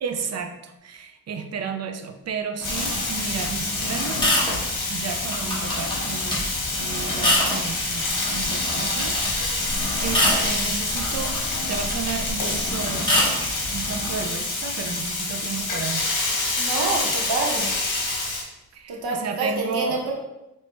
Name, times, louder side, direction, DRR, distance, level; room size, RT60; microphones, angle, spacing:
voice 1, 0.0-4.4 4.9-11.4 11.7-13.2 13.7-16.6 17.1-17.3 18.7-20.0, right 6 dB, 45° right, 7 dB, 0.5 m, -33 dB
Frying (food), 2.6-18.4, left 2 dB, 60° left, 1.2 m, -27 dB
sound 1, 2.6-14.2, left 1 dB, 10° left, 1.3 m, -28 dB
voice 2, 16.6-17.7 18.1-18.2 18.9-20.1, right 3 dB, 85° right, -1 dB, 1.0 m, -27 dB
4.4 x 3.0 x 2.9 m, 0.93 s
cardioid pair, 105°, 36 cm